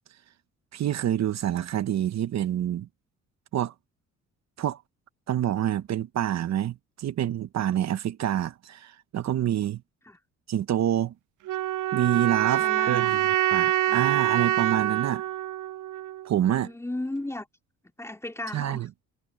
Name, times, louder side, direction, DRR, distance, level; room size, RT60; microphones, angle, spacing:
voice 1, 0.7-2.9 3.5-3.7 4.6-4.8 5.3-9.8 10.5-11.1 11.9-13.2 13.5-15.2 16.2-16.7 18.5-18.9, right 11 dB, 60° right, 1.0 m, -27 dB
sound 1, 11.5-16.5, right 14 dB, 85° right, 0.7 m, -26 dB
voice 2, 12.4-13.2 13.8-14.1 16.4-17.5 18.0-18.9, left 1 dB, 10° left, 2.8 m, -36 dB
cardioid pair, 90°, 30 cm